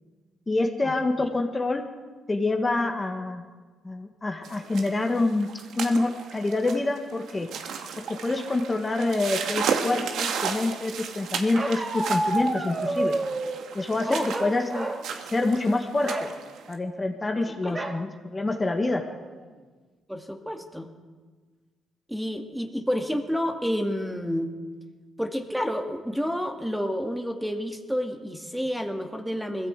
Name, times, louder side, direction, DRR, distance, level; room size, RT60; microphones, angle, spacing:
voice 1, 0.5-1.8 2.3-3.5 3.8-5.5 5.8-7.5 8.1-13.1 13.7-14.9 15.3-16.3 16.7-19.0, left 2 dB, 20° left, 4 dB, 1.9 m, -26 dB
sound 1, 4.4-16.7, right 6 dB, 75° right, 2.0 m, -34 dB
Bark, 11.5-13.7 14.3-15.1 15.4-15.6 16.0-16.3 17.7-18.0 18.6-18.7 19.0-19.4, right 2 dB, 25° right, 2.6 m, -29 dB
voice 2, 20.1-20.9 22.1-24.5 25.2-29.7, equal, ahead, 4 dB, 2.2 m, -29 dB
21.0 x 15.0 x 8.4 m, 1.4 s
cardioid pair, 90°, 0 cm